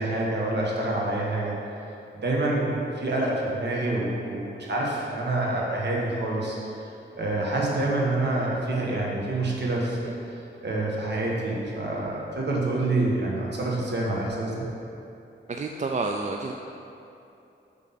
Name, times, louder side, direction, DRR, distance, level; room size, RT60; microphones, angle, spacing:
voice 1, 0.0-1.6 2.2-6.6 7.1-10.3 10.6-14.6, right 2 dB, 60° right, -3 dB, 1.4 m, -27 dB
voice 2, 15.5-16.5, right 3 dB, 40° right, 2 dB, 0.4 m, -29 dB
7.7 x 3.7 x 5.6 m, 2.8 s
wide cardioid pair, 95°, 20 cm